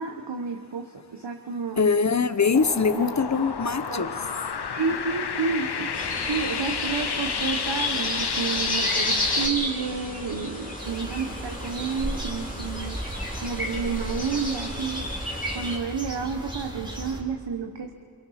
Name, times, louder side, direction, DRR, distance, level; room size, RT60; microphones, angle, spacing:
voice 1, 0.0-1.8 2.9-3.1 3.8-4.1 4.7-5.9 6.3-13.0 13.4-15.1 15.5-17.9, right 5 dB, 85° right, 3 dB, 1.3 m, -30 dB
voice 2, 1.8-4.1, left 5 dB, 40° left, 12 dB, 1.0 m, -23 dB
sound 1, 2.5-9.5, left 6 dB, 70° left, 1.0 m, -30 dB
sound 2, 5.9-15.8, left 1 dB, 20° left, 3.2 m, -32 dB
sound 3, 10.7-17.2, right 1 dB, 10° right, 3.0 m, -36 dB
28.5 x 23.5 x 5.9 m, 2.2 s
wide cardioid pair, 70°, 41 cm